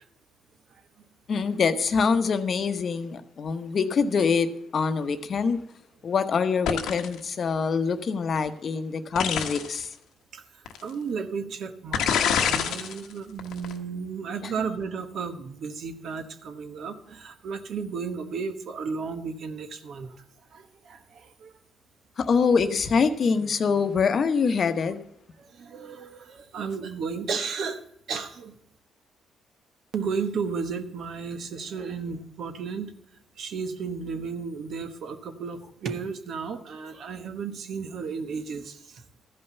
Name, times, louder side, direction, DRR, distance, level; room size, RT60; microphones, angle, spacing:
voice 1, 1.3-5.6 6.0-9.9 14.4-14.5 22.2-25.0, left 5 dB, 50° left, 10 dB, 0.9 m, -25 dB
sound 1, 6.7-7.2 9.1-9.8 10.7-10.8 11.9-13.0 13.4-13.7, left 8 dB, 80° left, 1.1 m, -25 dB
voice 2, 10.8-20.2 20.5-21.6 25.4-28.5 29.9-32.9 33.4-39.0, right 5 dB, 65° right, 8 dB, 1.1 m, -34 dB
13.5 x 5.5 x 6.9 m, 0.77 s
cardioid pair, 90°, 0 cm